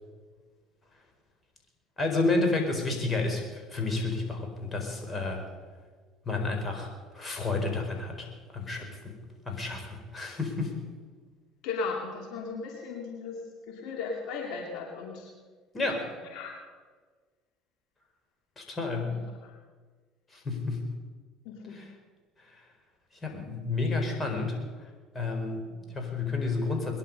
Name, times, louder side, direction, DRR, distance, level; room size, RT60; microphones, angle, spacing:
voice 1, 2.0-3.4 3.7-5.4 6.3-6.9 7.1-8.3 8.5-8.9 9.4-9.9 10.1-10.7 15.7-16.0 18.6-19.2 20.3-20.9 21.7-21.9 23.2-24.6 25.1-25.7 25.9-27.0, left 3 dB, 25° left, 3 dB, 4.6 m, -30 dB
voice 2, 11.6-15.3 16.0-16.6 19.0-19.5 21.4-21.8 25.7-25.9, left 4 dB, 70° left, 0 dB, 2.6 m, -37 dB
22.0 x 11.0 x 5.5 m, 1.5 s
supercardioid pair, 80°, 0 cm